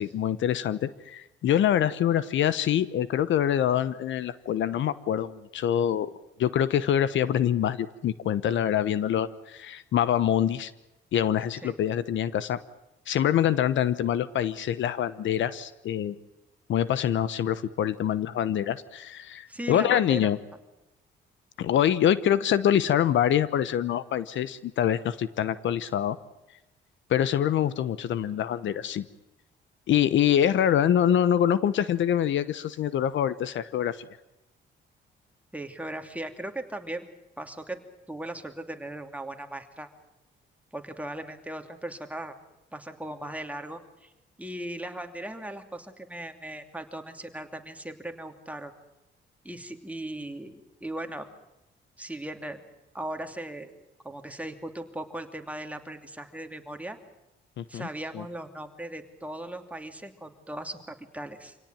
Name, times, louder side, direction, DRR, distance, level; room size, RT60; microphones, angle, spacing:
voice 1, 0.0-6.1 6.4-10.7 11.1-12.6 13.1-16.2 16.7-20.4 21.6-26.2 27.1-29.1 29.9-34.0 57.6-57.9 58.1-58.2, left 10 dB, 70° left, 16 dB, 1.0 m, -25 dB
voice 2, 19.5-20.3 35.5-37.1 37.4-37.8 38.1-39.9 40.7-42.3 42.7-44.1 44.4-48.7 49.4-51.3 52.0-52.6 52.9-53.7 54.0-57.0 57.7-61.6, right 1 dB, 5° right, 5 dB, 2.8 m, -38 dB
26.0 x 17.5 x 9.2 m, 0.94 s
cardioid pair, 90°, 20 cm